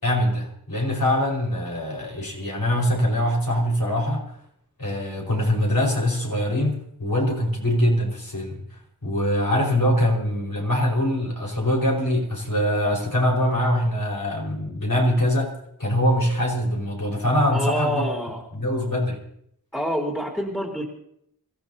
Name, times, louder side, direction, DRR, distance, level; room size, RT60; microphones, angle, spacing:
voice 1, 0.0-4.2 4.8-8.6 9.0-15.5 15.8-18.1 18.5-19.2, left 1 dB, 60° left, -1 dB, 5.2 m, -23 dB
voice 2, 17.5-18.4 19.7-20.8, equal, 5° left, -2 dB, 3.3 m, -27 dB
27.0 x 15.5 x 2.9 m, 0.73 s
wide cardioid pair, 40°, 38 cm